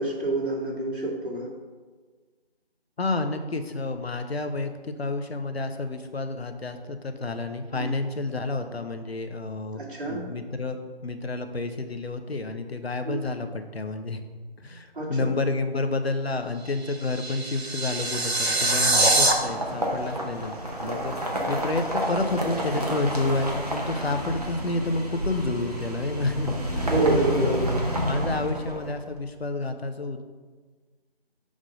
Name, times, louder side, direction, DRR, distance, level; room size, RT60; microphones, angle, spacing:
voice 1, 0.0-1.5 7.7-7.9 9.7-10.2 13.0-13.2 14.9-15.3 26.9-27.7, right 2 dB, 55° right, -5 dB, 2.0 m, -27 dB
voice 2, 3.0-9.8 10.1-14.2 14.6-27.6 28.0-30.2, left 2 dB, 75° left, 7 dB, 0.8 m, -30 dB
sound 1, 16.6-19.3, right 2 dB, 85° right, 1.0 m, -23 dB
sound 2, 18.3-29.1, equal, 40° right, 0.9 m, -30 dB
6.3 x 3.7 x 5.0 m, 1.4 s
figure-of-eight pair, 160°, 31 cm